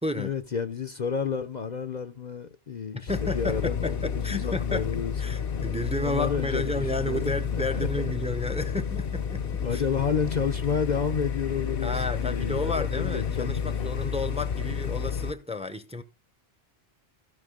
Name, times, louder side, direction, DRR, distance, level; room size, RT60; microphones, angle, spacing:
voice 1, 0.1-5.1 6.0-8.1 9.6-14.1, left 6 dB, 50° left, 0.7 m, -31 dB
voice 2, 2.9-4.8 5.2-9.8 11.8-16.0, left 2 dB, 5° right, 0.8 m, -32 dB
sound 1, 3.1-15.3, left 7 dB, 65° left, 1.0 m, -30 dB
15.5 x 6.1 x 3.7 m
omnidirectional pair, 1.1 m